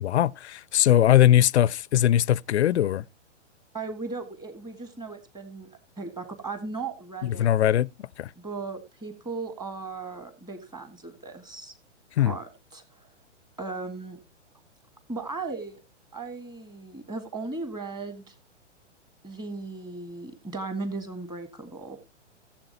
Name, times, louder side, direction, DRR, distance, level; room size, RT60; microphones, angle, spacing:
voice 1, 0.0-3.0 7.2-7.9 8.2-8.3 12.2-12.4, left 12 dB, 65° left, 0.5 m, -21 dB
voice 2, 3.7-5.7 6.0-7.5 8.4-11.7 12.2-13.0 13.6-14.2 15.1-15.8 16.1-18.3 19.2-22.0, right 3 dB, 10° right, 1.5 m, -37 dB
16.0 x 7.4 x 2.8 m
figure-of-eight pair, 120°, 37 cm